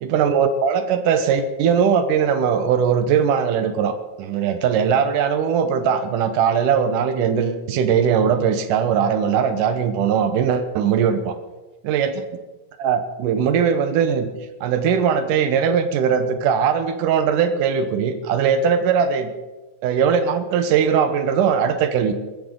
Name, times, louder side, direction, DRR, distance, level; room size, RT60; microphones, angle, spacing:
voice 1, 0.0-11.3 11.8-12.2 12.8-14.3 14.6-19.3 19.8-22.1, right 7 dB, 90° right, 9 dB, 2.6 m, -20 dB
22.0 x 13.5 x 3.8 m, 1.1 s
omnidirectional pair, 3.6 m